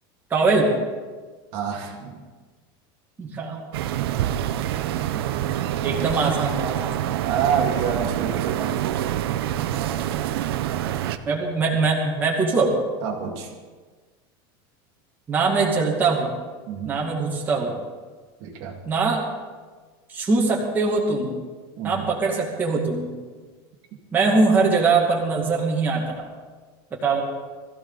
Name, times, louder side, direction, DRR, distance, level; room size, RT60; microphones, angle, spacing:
voice 1, 0.3-0.7 3.2-3.6 5.8-7.0 11.3-12.7 15.3-16.3 16.8-17.7 18.9-19.2 20.1-21.4 21.8-23.1 24.1-26.3 27.0-27.2, right 4 dB, 15° right, -3 dB, 2.2 m, -22 dB
voice 2, 1.5-2.2 4.9-5.4 7.2-8.8 13.0-13.5 16.7-16.9 18.4-18.8 21.8-22.1, right 7 dB, 45° right, 1 dB, 2.1 m, -28 dB
sound 1, 3.7-11.2, right 11 dB, 90° right, 0.8 m, -26 dB
20.5 x 14.5 x 4.0 m, 1.4 s
supercardioid pair, 175°, 12 cm